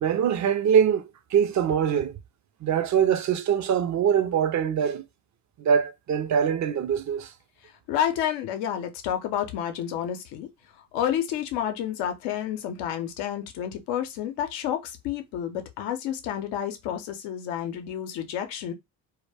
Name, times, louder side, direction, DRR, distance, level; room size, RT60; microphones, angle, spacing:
voice 1, 0.0-2.2 2.6-5.0 5.6-7.3, right 8 dB, 45° right, 0.5 m, -23 dB
voice 2, 7.9-10.5 10.9-18.7, left 10 dB, 75° left, 0.7 m, -30 dB
2.2 x 2.1 x 3.3 m
supercardioid pair, 60°, 42 cm